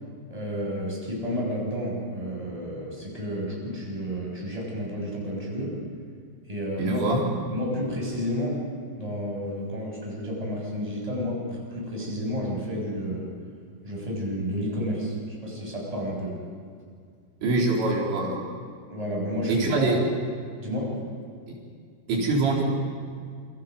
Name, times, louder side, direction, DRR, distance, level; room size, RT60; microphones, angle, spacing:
voice 1, 0.3-5.8 6.5-7.0 7.5-8.6 9.0-13.3 13.8-16.4 18.9-19.9 20.6-21.0, equal, 10° right, -3 dB, 6.6 m, -31 dB
voice 2, 6.8-7.2 17.4-18.4 19.5-20.0 21.5-21.6 22.1-22.6, right 2 dB, 85° right, -2 dB, 6.1 m, -24 dB
27.5 x 26.0 x 5.3 m, 2.1 s
omnidirectional pair, 5.1 m